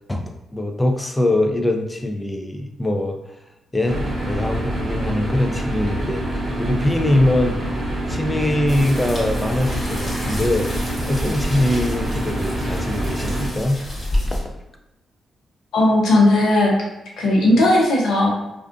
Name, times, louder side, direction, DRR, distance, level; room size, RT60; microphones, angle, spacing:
voice 1, 0.1-3.2 3.7-7.6 8.1-10.7 11.1-13.8 14.3-14.5, left 1 dB, 15° left, 3 dB, 0.4 m, -22 dB
sound 1, 3.9-13.5, right 1 dB, 50° right, 0.6 m, -26 dB
sound 2, 8.7-14.4, left 1 dB, 30° left, 0.9 m, -30 dB
voice 2, 15.7-16.7 17.2-18.3, left 1 dB, 80° left, -2 dB, 0.7 m, -16 dB
2.4 x 2.3 x 2.4 m, 0.90 s
cardioid pair, 70°, 0 cm